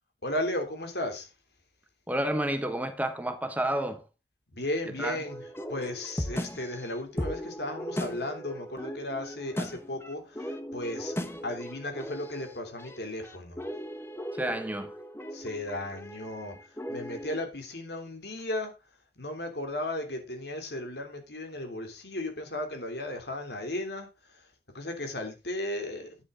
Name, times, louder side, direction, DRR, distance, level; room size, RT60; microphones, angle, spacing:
voice 1, 0.2-1.3 4.5-5.4 5.7-11.1 11.4-13.6 15.3-18.7 19.2-24.5 24.7-26.2, left 1 dB, 65° left, 3.2 m, -35 dB
voice 2, 2.1-4.0 5.0-5.2 14.3-14.9, right 1 dB, 10° right, 1.0 m, -30 dB
sound 1, 5.2-17.4, equal, 15° left, 1.1 m, -38 dB
10.5 x 9.7 x 3.8 m
head